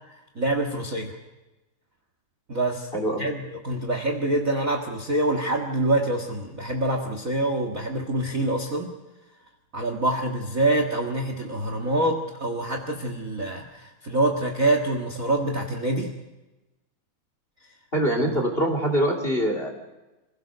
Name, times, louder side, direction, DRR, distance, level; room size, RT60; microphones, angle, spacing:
voice 1, 0.3-1.1 2.5-2.9 3.2-8.9 9.7-16.1 18.2-18.3, right 1 dB, 45° right, 4 dB, 1.1 m, -26 dB
voice 2, 2.9-3.3 17.9-19.8, right 1 dB, 15° left, 2 dB, 2.7 m, -24 dB
26.5 x 17.0 x 6.6 m, 1.1 s
omnidirectional pair, 4.4 m